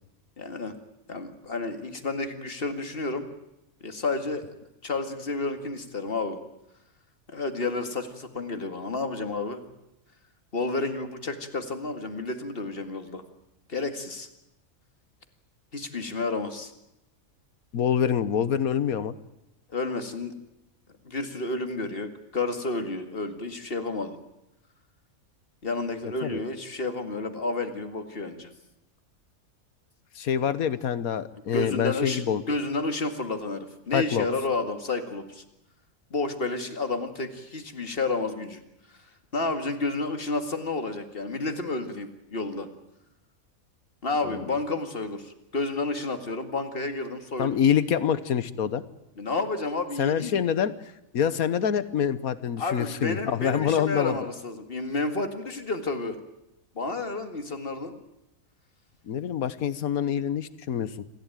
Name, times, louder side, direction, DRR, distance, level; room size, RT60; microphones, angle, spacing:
voice 1, 0.4-0.7 1.1-3.3 3.8-6.4 7.3-9.6 10.5-13.2 13.7-14.3 15.7-16.7 19.7-20.3 21.0-24.2 25.6-28.5 30.4-30.5 31.5-35.4 36.1-38.6 38.9-42.7 44.0-47.6 49.2-50.3 52.6-56.2 56.8-58.0, left 3 dB, 40° left, 7 dB, 2.2 m, -31 dB
voice 2, 17.7-19.1 26.2-26.4 30.1-32.4 33.9-34.3 44.2-44.4 47.4-48.8 50.0-54.2 59.1-60.9, left 8 dB, 90° left, 15 dB, 1.5 m, -26 dB
26.5 x 15.0 x 9.1 m, 0.87 s
omnidirectional pair, 1.5 m